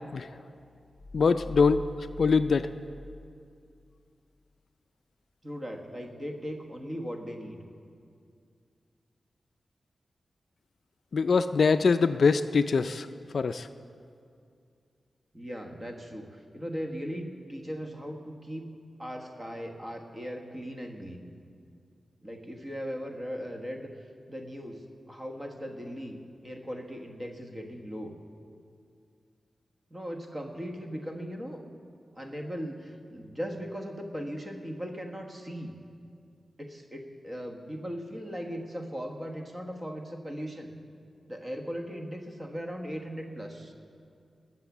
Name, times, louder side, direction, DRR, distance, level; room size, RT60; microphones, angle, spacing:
sound 1, 1.0-3.8, left 2 dB, 10° left, 2.4 m, -43 dB
voice 1, 1.1-2.7 11.1-13.1 13.3-13.7, left 5 dB, 55° left, 10 dB, 0.3 m, -23 dB
voice 2, 5.4-7.6 15.3-18.7 19.0-21.3 22.2-23.9 24.3-26.2 26.4-28.1 29.9-31.6 32.1-35.7 36.6-40.7 41.3-43.7, equal, 20° right, 2 dB, 1.2 m, -38 dB
20.0 x 7.3 x 7.1 m, 2.4 s
wide cardioid pair, 170°, 0 cm